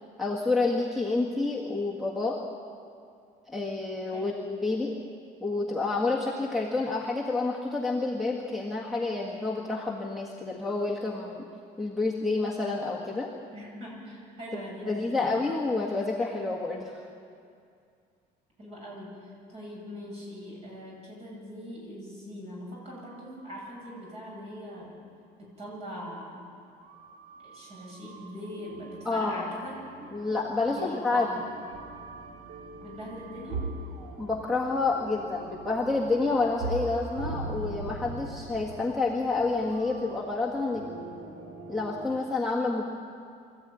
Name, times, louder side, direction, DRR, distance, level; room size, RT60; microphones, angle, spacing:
voice 1, 0.2-2.4 3.5-4.9 5.4-11.5 11.8-13.3 14.8-17.0 29.1-29.5 30.1-31.4 34.2-40.8 41.7-42.8, left 3 dB, ahead, -2 dB, 1.7 m, -29 dB
voice 2, 13.5-15.3 18.6-24.9 25.4-26.5 27.4-29.8 30.7-31.5 32.8-33.7, equal, 40° right, -2 dB, 7.8 m, -41 dB
sound 1, 22.8-24.4 24.7-24.8 25.6-25.7 26.8-42.2, right 3 dB, 60° right, 2.4 m, -41 dB
24.5 x 14.5 x 9.2 m, 2.4 s
cardioid pair, 175°, 17 cm